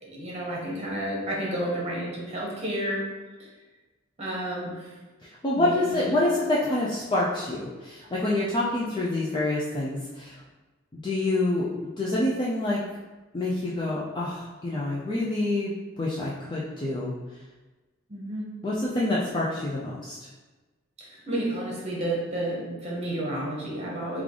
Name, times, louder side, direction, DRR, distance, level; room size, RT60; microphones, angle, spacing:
voice 1, 0.0-3.0 4.2-5.0 5.5-6.2 18.1-18.5 21.0-24.2, right 1 dB, 30° right, -4 dB, 0.9 m, -31 dB
voice 2, 5.4-10.4 11.0-11.7 12.0-12.8 13.3-15.7 16.0-17.1 18.6-20.2, left 2 dB, 20° left, -7 dB, 0.3 m, -27 dB
3.2 x 2.3 x 3.7 m, 1.2 s
head